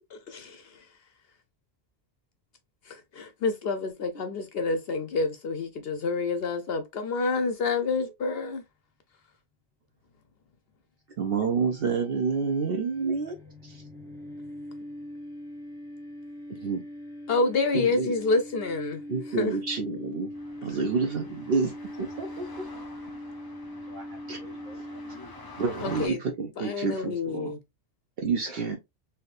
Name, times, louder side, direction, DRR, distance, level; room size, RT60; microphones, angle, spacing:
voice 1, 0.1-0.9 2.9-8.6 17.3-19.0 19.4-19.6 25.8-26.2 26.6-27.6, left 3 dB, 65° left, 0.7 m, -28 dB
voice 2, 11.2-13.4 13.6-13.8 16.5-16.8 17.7-18.1 19.1-20.3 20.6-21.7 22.0-22.5 24.3-24.4 25.6-27.5 28.2-28.8, right 5 dB, 60° right, 0.8 m, -28 dB
sound 1, 11.6-25.6, left 1 dB, 5° left, 0.8 m, -42 dB
sound 2, 20.3-26.1, left 2 dB, 30° left, 0.4 m, -47 dB
voice 3, 23.8-25.4 28.5-28.8, equal, 45° right, 1.5 m, -48 dB
3.4 x 2.8 x 2.4 m
omnidirectional pair, 1.2 m